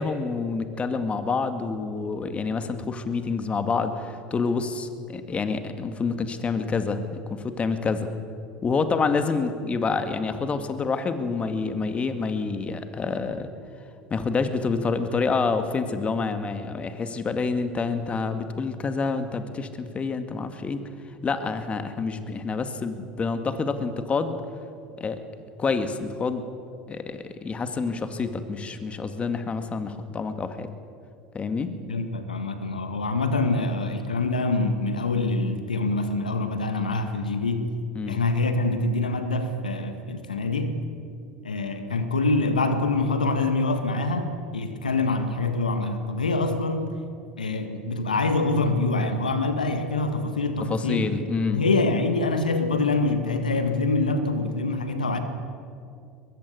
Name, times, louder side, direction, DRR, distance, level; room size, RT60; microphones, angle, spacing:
voice 1, 0.0-8.1 8.6-13.5 14.1-20.8 21.2-24.4 25.0-25.2 25.6-26.4 26.9-30.7 31.3-31.7 38.0-38.2 50.7-51.6, left 4 dB, 30° left, 9 dB, 2.1 m, -27 dB
voice 2, 31.7-37.7 38.1-40.8 41.4-47.0 47.4-51.1 51.5-55.2, left 3 dB, 90° left, 8 dB, 1.7 m, -25 dB
22.0 x 22.0 x 8.2 m, 2.4 s
hypercardioid pair, 75°, 4 cm